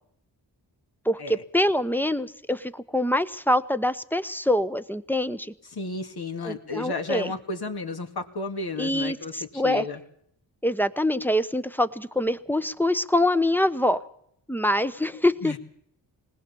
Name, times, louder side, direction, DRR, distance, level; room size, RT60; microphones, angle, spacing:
voice 1, 1.0-5.5 6.4-7.3 8.8-9.8 10.6-14.0 14.5-15.6, left 1 dB, 5° left, 12 dB, 1.0 m, -25 dB
voice 2, 5.7-10.0 15.4-15.6, left 3 dB, 60° left, 5 dB, 2.3 m, -33 dB
20.0 x 18.5 x 7.1 m, 0.70 s
cardioid pair, 55°, 44 cm